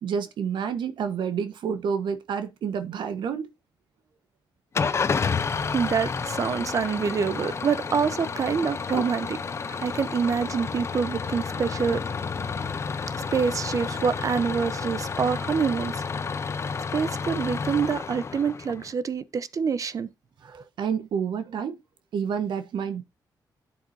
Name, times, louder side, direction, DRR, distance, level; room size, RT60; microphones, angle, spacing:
voice 1, 0.0-3.5 20.8-21.8 22.1-23.0, right 7 dB, 85° right, 1.4 m, -29 dB
Engine starting / Idling, 4.7-18.9, left 5 dB, 35° left, 0.8 m, -30 dB
voice 2, 5.6-9.4 9.7-12.0 13.1-16.0 16.9-20.1 20.4-20.6, right 6 dB, 45° right, 0.9 m, -26 dB
11.5 x 7.3 x 2.8 m
wide cardioid pair, 125°, 8 cm